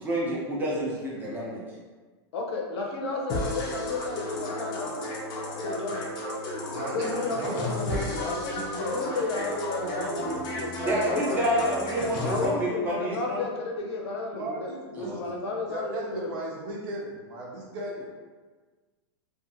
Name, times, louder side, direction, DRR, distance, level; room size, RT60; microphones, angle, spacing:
voice 1, 0.0-1.6 10.9-13.4 14.9-15.2, equal, 15° right, -6 dB, 0.6 m, -28 dB
voice 2, 2.3-5.1 5.5-6.1 6.9-10.2 10.6-10.7 11.0-11.8 12.2-14.7 14.9-16.3, left 3 dB, 70° left, 0 dB, 0.6 m, -33 dB
sound 1, 3.3-12.5, left 1 dB, 30° left, 0.5 m, -33 dB
voice 3, 6.7-9.4 9.8-11.4 14.3-15.2 15.7-18.0, right 2 dB, 60° right, -3 dB, 0.8 m, -36 dB
2.5 x 2.5 x 2.7 m, 1.4 s
supercardioid pair, 145°, 14 cm